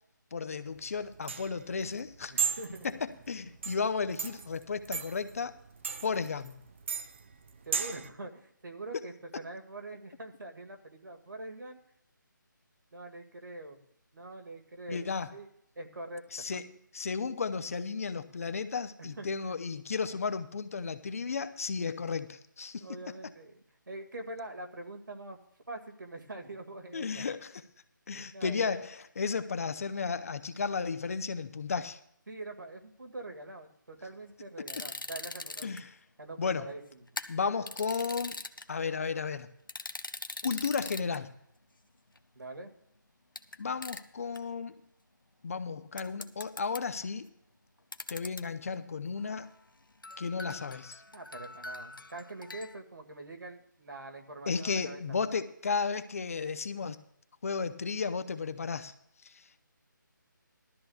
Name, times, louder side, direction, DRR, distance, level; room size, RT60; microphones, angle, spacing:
voice 1, 0.3-2.5 2.8-5.5 6.0-6.5 14.9-15.3 16.3-16.7 16.9-22.9 26.9-27.6 28.1-32.0 34.6-34.8 35.6-36.0 36.4-36.7 37.3-38.4 38.7-39.5 40.4-41.3 43.6-44.8 45.4-47.3 48.1-49.5 50.2-51.0 54.5-57.0 57.4-58.9 59.2-59.6, left 5 dB, 45° left, 11 dB, 0.6 m, -34 dB
sound 1, 0.7-8.1, right 6 dB, 35° right, 0.5 m, -37 dB
voice 2, 2.3-2.9 7.7-11.8 12.9-13.8 14.1-16.5 19.0-19.5 22.8-25.4 25.7-27.2 28.3-28.6 32.3-35.8 36.2-37.1 42.4-42.7 51.1-55.2, right 2 dB, 75° right, 3 dB, 2.0 m, -44 dB
sound 2, 34.7-35.8 37.1-38.6 39.7-41.2 42.2-42.3 43.4-43.6 43.8-44.0 44.3-44.4 46.0-47.0 47.9-48.4 48.7-48.8 49.2-49.5 50.0-52.8, left 2 dB, 85° left, 0.8 m, -42 dB
18.0 x 12.5 x 2.3 m, 0.73 s
figure-of-eight pair, 155°, 11 cm